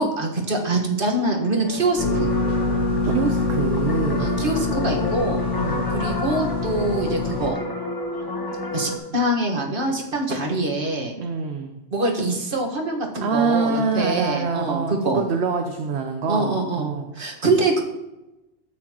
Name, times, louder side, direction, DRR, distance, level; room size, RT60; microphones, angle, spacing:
voice 1, 0.0-2.3 4.2-5.4 5.9-7.6 8.7-11.1 11.9-15.2 16.3-16.9 17.2-17.8, right 2 dB, 45° right, 0 dB, 1.7 m, -24 dB
sound 1, 1.4-9.0, left 2 dB, 20° left, 1.0 m, -31 dB
sound 2, 2.0-7.5, left 3 dB, 80° left, 4.2 m, -25 dB
voice 2, 3.0-4.3 5.5-5.9 11.2-11.8 13.2-17.1, right 4 dB, 65° right, 4 dB, 1.0 m, -25 dB
12.5 x 8.5 x 3.0 m, 0.98 s
omnidirectional pair, 1.3 m